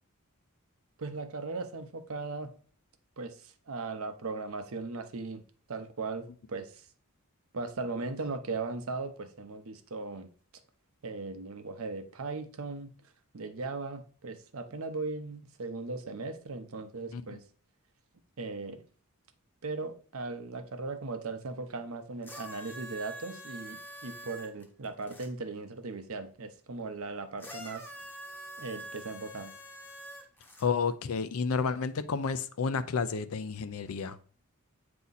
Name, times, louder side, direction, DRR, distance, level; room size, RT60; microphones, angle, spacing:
voice 1, 1.0-2.5 3.2-5.4 5.7-6.9 7.5-10.3 11.0-12.9 13.3-17.4 18.4-18.8 19.6-27.9 28.6-29.5, right 3 dB, 65° right, 0.7 m, -38 dB
sound 1, 22.2-25.3 27.4-30.7 31.6-31.7, right 1 dB, 10° left, 0.8 m, -45 dB
voice 2, 30.6-34.2, left 5 dB, 70° left, 0.5 m, -31 dB
8.3 x 2.9 x 3.9 m
head